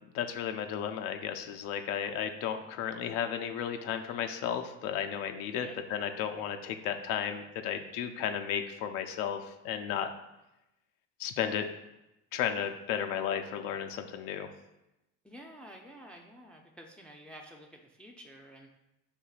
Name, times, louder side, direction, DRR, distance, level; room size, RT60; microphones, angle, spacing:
voice 1, 0.1-10.1 11.2-11.7 12.3-14.5, left 8 dB, 70° left, 6 dB, 0.5 m, -34 dB
voice 2, 15.2-18.7, equal, 5° left, 1 dB, 0.5 m, -50 dB
6.6 x 2.7 x 2.4 m, 0.92 s
hypercardioid pair, 70°, 37 cm